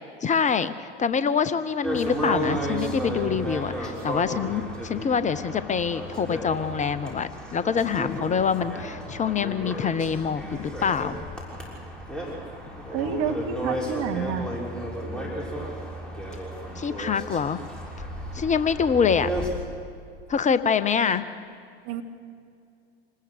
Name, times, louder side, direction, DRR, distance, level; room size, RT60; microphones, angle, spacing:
voice 1, 0.2-11.2 16.8-17.6 18.3-19.3 20.3-21.2, left 6 dB, 25° left, 13 dB, 0.8 m, -25 dB
sound 1, 1.8-19.5, equal, 5° left, 6.4 m, -33 dB
voice 2, 12.9-14.5 21.8-22.0, right 7 dB, 50° right, 5 dB, 1.9 m, -29 dB
26.5 x 20.0 x 6.6 m, 2.3 s
figure-of-eight pair, 80°, 31 cm